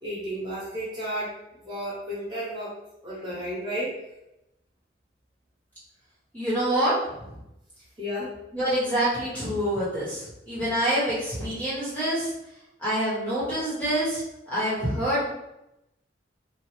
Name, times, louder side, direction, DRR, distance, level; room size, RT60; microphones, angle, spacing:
voice 1, 0.0-1.4 1.6-2.8 3.0-4.0 8.0-8.4, equal, 25° right, -7 dB, 1.0 m, -32 dB
voice 2, 6.3-6.9 8.5-12.3 12.8-14.2 14.5-15.3, right 1 dB, 10° left, -9 dB, 0.9 m, -26 dB
3.0 x 2.0 x 3.1 m, 0.88 s
head